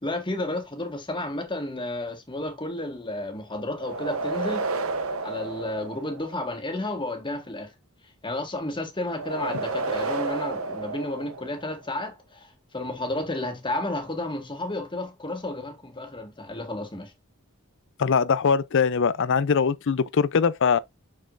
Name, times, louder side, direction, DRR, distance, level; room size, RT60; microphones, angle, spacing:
voice 1, 0.0-4.7 5.2-7.7 8.2-12.5 12.7-17.1, left 2 dB, 20° left, 1.7 m, -32 dB
sound 1, 3.8-6.5 9.1-11.8, right 3 dB, 70° right, 1.0 m, -31 dB
voice 2, 18.0-20.8, left 6 dB, 60° left, 0.5 m, -22 dB
6.6 x 6.1 x 2.5 m
head